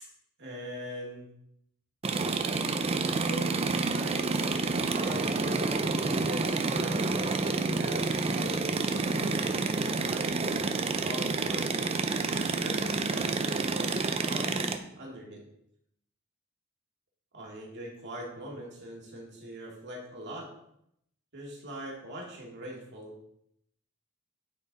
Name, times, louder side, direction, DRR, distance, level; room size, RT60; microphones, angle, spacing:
voice 1, 0.4-1.3 3.2-10.3 10.9-12.2 12.5-13.9 14.2-15.4 17.3-20.5 21.3-23.2, equal, 55° right, -2 dB, 2.1 m, -42 dB
sound 1, 2.0-14.8, right 3 dB, 30° right, 0.5 m, -29 dB
9.5 x 4.6 x 4.0 m, 0.75 s
head